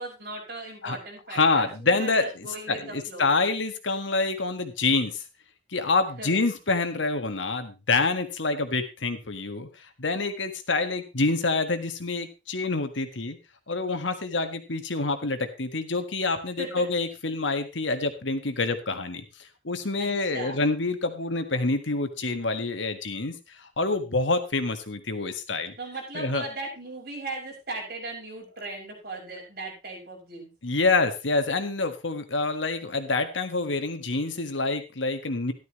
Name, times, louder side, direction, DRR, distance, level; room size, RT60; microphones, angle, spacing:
voice 1, 0.0-3.3 6.2-6.3 16.6-16.9 20.0-20.6 25.8-30.5, right 2 dB, 55° right, -2 dB, 7.3 m, -37 dB
voice 2, 1.3-5.2 5.7-13.4 13.7-25.7 26.1-26.5 30.6-35.5, left 3 dB, 90° left, 8 dB, 1.6 m, -27 dB
13.5 x 12.0 x 3.2 m, 0.27 s
head